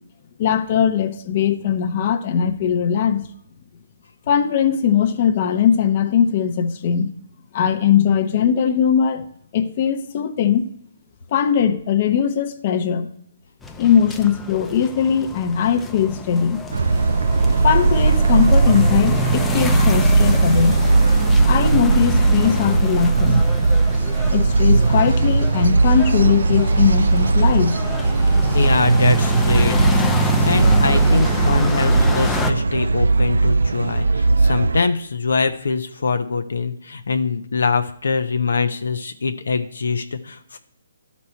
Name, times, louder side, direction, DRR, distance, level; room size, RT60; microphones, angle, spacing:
voice 1, 0.4-3.2 4.3-7.1 7.5-9.3 9.5-10.7 11.3-13.1 13.8-16.6 17.6-20.8 21.5-23.4 24.3-27.8, left 8 dB, 40° left, 7 dB, 0.8 m, -19 dB
sound 1, 13.6-32.5, left 4 dB, 10° left, 0.5 m, -28 dB
sound 2, 16.7-34.8, right 3 dB, 80° right, 0.3 m, -17 dB
voice 2, 28.5-29.8 30.4-40.6, left 4 dB, 75° left, 7 dB, 0.7 m, -23 dB
12.0 x 4.2 x 4.4 m, 0.68 s
hypercardioid pair, 150°, 0 cm